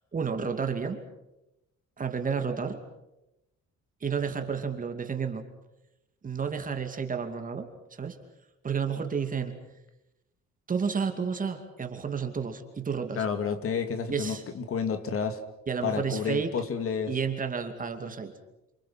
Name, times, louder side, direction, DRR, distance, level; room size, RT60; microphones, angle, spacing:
voice 1, 0.1-1.0 2.0-2.8 4.0-5.5 6.2-8.2 8.6-9.6 10.7-13.2 14.1-14.4 15.7-16.5 17.1-18.3, right 6 dB, 30° right, 6 dB, 2.5 m, -31 dB
voice 2, 13.1-15.4 15.8-17.2, left 6 dB, 50° left, 8 dB, 2.3 m, -30 dB
29.5 x 26.0 x 5.8 m, 0.92 s
cardioid pair, 160°, 29 cm